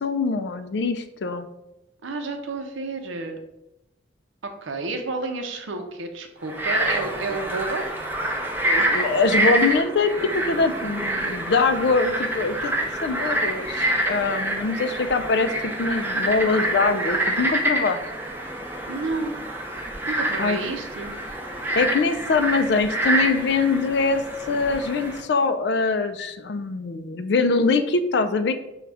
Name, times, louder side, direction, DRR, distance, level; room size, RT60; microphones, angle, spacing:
voice 1, 0.0-1.5 8.7-18.0 20.4-20.6 21.8-24.2 24.5-28.5, left 4 dB, 60° left, 9 dB, 0.4 m, -23 dB
voice 2, 2.0-3.4 4.4-7.9 18.9-19.4 20.1-21.2, right 3 dB, 85° right, 5 dB, 0.6 m, -31 dB
Frog, 6.5-25.2, right 1 dB, 10° right, 0.5 m, -27 dB
6.2 x 2.3 x 3.3 m, 0.91 s
head